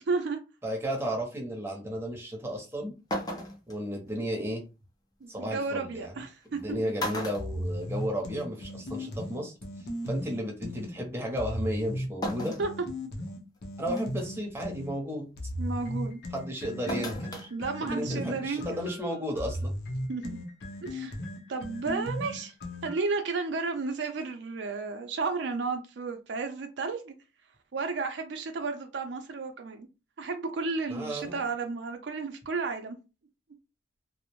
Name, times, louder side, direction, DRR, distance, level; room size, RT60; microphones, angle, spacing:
voice 1, 0.1-0.4 5.2-6.9 12.6-12.7 15.6-16.2 17.5-18.8 20.1-20.4 20.8-21.1 21.5-22.5 22.8-27.1 27.7-29.9 30.2-33.0, right 4 dB, 75° right, 0.5 m, -32 dB
voice 2, 0.6-2.9 3.7-4.6 5.3-6.1 6.5-9.5 10.0-12.5 13.8-15.3 16.3-17.5 17.9-19.7 30.9-31.4, equal, 15° right, 0.7 m, -33 dB
sound 1, 2.6-2.7 3.1-3.8 5.4-5.5 6.4-6.6 7.0-8.4 8.7-8.8 10.0-10.1 12.2-12.7 13.3-13.4 14.0-14.3 16.9-17.5 17.8-17.9, equal, 20° left, 0.5 m, -35 dB
sound 2, 7.4-10.9 11.4-14.9 15.4-23.2, equal, 60° left, 0.6 m, -36 dB
2.5 x 2.0 x 2.9 m
head